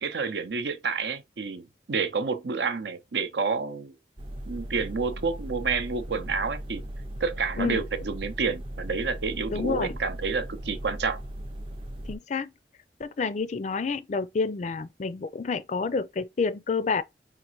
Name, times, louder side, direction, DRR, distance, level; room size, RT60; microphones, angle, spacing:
voice 1, 0.0-3.9 4.5-6.8 7.2-11.2, right 5 dB, 70° right, 0.7 m, -29 dB
sound 1, 4.2-12.2, right 1 dB, 30° right, 0.6 m, -38 dB
voice 2, 9.5-10.0 12.1-12.5 13.0-17.0, left 4 dB, 40° left, 0.4 m, -29 dB
5.1 x 2.5 x 3.1 m
head